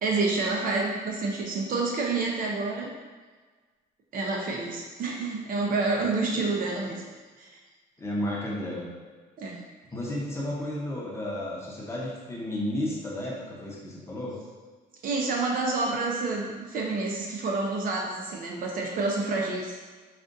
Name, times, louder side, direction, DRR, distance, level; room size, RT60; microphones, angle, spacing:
voice 1, 0.0-2.9 4.1-7.0 7.4-7.5 9.4-9.6 15.0-19.8, right 3 dB, 55° right, -1 dB, 0.7 m, -28 dB
voice 2, 8.0-8.9 9.9-14.4, left 1 dB, 15° left, -4 dB, 0.8 m, -32 dB
4.8 x 2.4 x 2.6 m, 1.4 s
cardioid pair, 110°, 17 cm